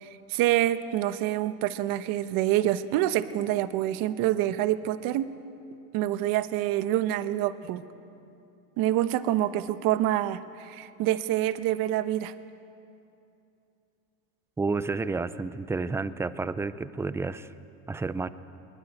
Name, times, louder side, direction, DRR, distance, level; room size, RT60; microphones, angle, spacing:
voice 1, 0.0-5.3 5.9-7.8 8.8-12.3, right 13 dB, 55° right, 12 dB, 1.2 m, -26 dB
voice 2, 14.6-17.5 17.9-18.3, right 3 dB, 5° right, 14 dB, 0.5 m, -30 dB
22.0 x 21.0 x 9.0 m, 2.7 s
supercardioid pair, 135°, 42 cm